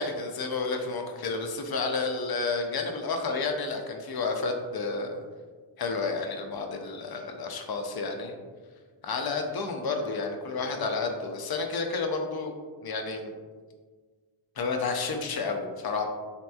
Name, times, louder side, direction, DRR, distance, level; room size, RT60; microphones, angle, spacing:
voice 1, 0.0-5.2 5.8-8.4 9.0-13.3 14.6-16.0, left 4 dB, 50° left, 4 dB, 0.5 m, -31 dB
3.2 x 2.9 x 2.2 m, 1.5 s
wide cardioid pair, 105°, 50 cm